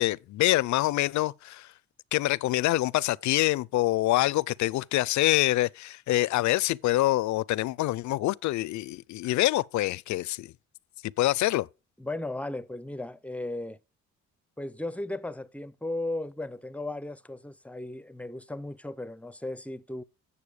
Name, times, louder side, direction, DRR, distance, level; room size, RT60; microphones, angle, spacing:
voice 1, 0.0-1.7 2.1-10.5 11.0-11.7, left 16 dB, 70° left, 0.5 m, -26 dB
voice 2, 12.0-13.8 14.6-20.0, left 2 dB, 5° left, 0.5 m, -36 dB
8.6 x 6.9 x 4.9 m
cardioid pair, 90°, 30 cm